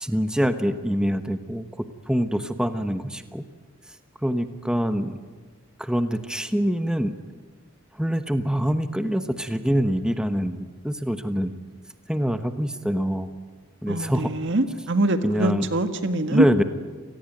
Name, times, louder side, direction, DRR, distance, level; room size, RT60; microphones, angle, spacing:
voice 1, 0.0-3.4 4.2-5.2 5.8-7.2 7.9-11.6 12.1-13.3 13.8-14.3 15.2-15.7 16.3-16.6, equal, 5° right, 8 dB, 1.1 m, -25 dB
voice 2, 13.9-16.6, right 1 dB, 60° right, 8 dB, 1.8 m, -24 dB
29.0 x 19.5 x 9.2 m, 1.4 s
head